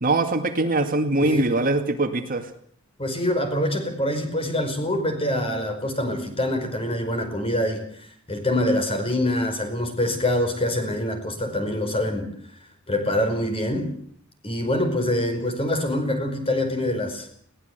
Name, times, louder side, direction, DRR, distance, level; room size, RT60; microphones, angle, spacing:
voice 1, 0.0-2.5, right 2 dB, 45° right, 6 dB, 2.2 m, -22 dB
voice 2, 3.0-12.3 12.9-13.9 14.4-17.3, left 1 dB, 30° left, 6 dB, 5.2 m, -25 dB
20.5 x 18.0 x 8.1 m, 0.63 s
head